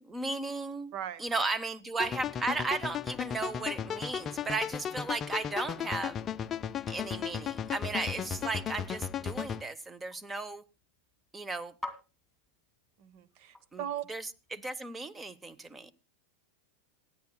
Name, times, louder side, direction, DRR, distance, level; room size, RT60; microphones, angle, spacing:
voice 1, 0.0-0.9 1.2-6.2 6.9-10.6 11.3-11.7 13.7-13.8 14.1-14.2 14.5-15.9, right 3 dB, 15° right, 19 dB, 0.9 m, -35 dB
sound 1, 2.0-9.6, left 8 dB, 30° left, 0.5 m, -35 dB
sound 2, 9.7-14.6, left 2 dB, ahead, 2.7 m, -50 dB
voice 2, 13.0-14.0, right 10 dB, 50° right, 18 dB, 1.1 m, -38 dB
26.5 x 9.5 x 2.3 m, 0.28 s
figure-of-eight pair, 95°, 0 cm